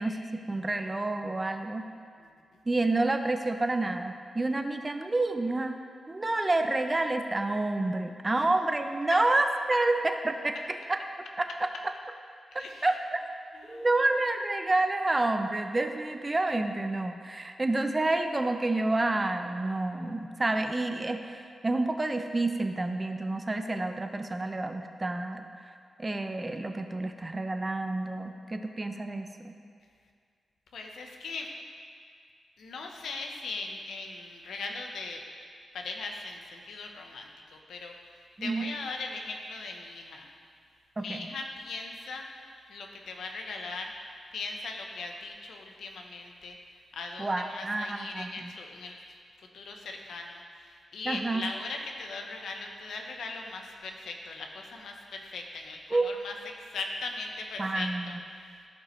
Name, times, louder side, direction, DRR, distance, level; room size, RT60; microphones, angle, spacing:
voice 1, 0.0-1.9 2.7-5.8 6.1-11.0 11.4-11.5 12.8-13.2 13.7-25.5 26.0-29.3 38.4-38.7 41.0-41.3 47.2-48.5 51.1-51.5 55.9-56.1 57.6-58.1, right 2 dB, 25° right, 6 dB, 0.6 m, -29 dB
voice 2, 2.2-2.6 8.3-8.5 12.5-12.9 13.5-14.0 30.7-31.5 32.6-35.2 35.7-40.3 41.0-42.3 42.7-43.9 44.3-46.6 46.9-49.0 49.5-58.7, left 3 dB, 85° left, 2 dB, 0.9 m, -39 dB
15.5 x 5.3 x 3.2 m, 2.1 s
cardioid pair, 90°, 0 cm